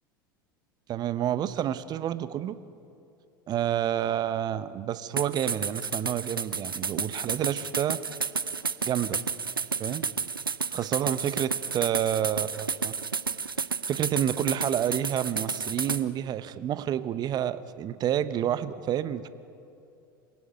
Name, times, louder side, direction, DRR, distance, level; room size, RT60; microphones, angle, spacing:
voice 1, 0.9-2.6 3.5-8.0 8.8-9.2 9.8-10.1 10.7-12.9 13.9-19.3, right 10 dB, 35° right, 14 dB, 1.0 m, -29 dB
sound 1, 5.2-16.0, right 5 dB, 85° right, 0.7 m, -31 dB
26.0 x 17.0 x 9.1 m, 2.6 s
figure-of-eight pair, 80°, 11 cm